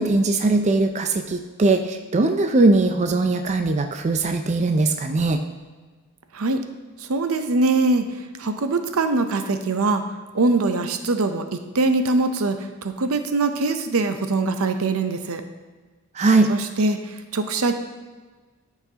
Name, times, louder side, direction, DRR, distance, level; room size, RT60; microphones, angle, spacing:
voice 1, 0.0-5.4 16.1-16.5, right 2 dB, 35° right, 6 dB, 0.4 m, -20 dB
voice 2, 7.0-8.0 8.4-10.0 10.3-15.4 16.5-17.0 17.3-17.7, right 3 dB, 70° right, 8 dB, 0.7 m, -22 dB
13.5 x 5.8 x 2.9 m, 1.3 s
head